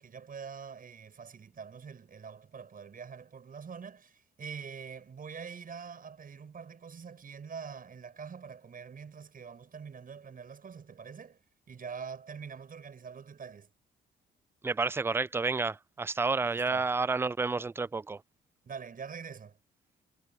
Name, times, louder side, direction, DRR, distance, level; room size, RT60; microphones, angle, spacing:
voice 1, 0.0-11.4 11.7-13.7 16.4-16.9 18.6-19.6, right 6 dB, 45° right, 7.6 m, -45 dB
voice 2, 14.6-18.2, right 4 dB, 10° right, 0.4 m, -30 dB
cardioid pair, 90°, 20 cm